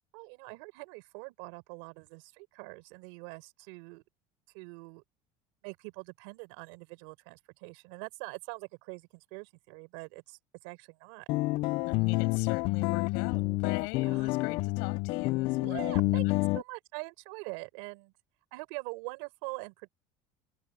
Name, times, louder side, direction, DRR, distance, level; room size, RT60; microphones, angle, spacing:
voice 1, 0.1-4.0 4.5-5.0 5.6-11.3 14.0-14.4 15.6-16.2 16.5-18.1 18.5-19.9, right 30 dB, 75° right, 4.3 m, -44 dB
sound 1, 11.3-16.6, left 22 dB, 50° left, 0.4 m, -29 dB
voice 2, 11.9-16.4, left 30 dB, 80° left, 7.1 m, -41 dB
cardioid pair, 170°, 11 cm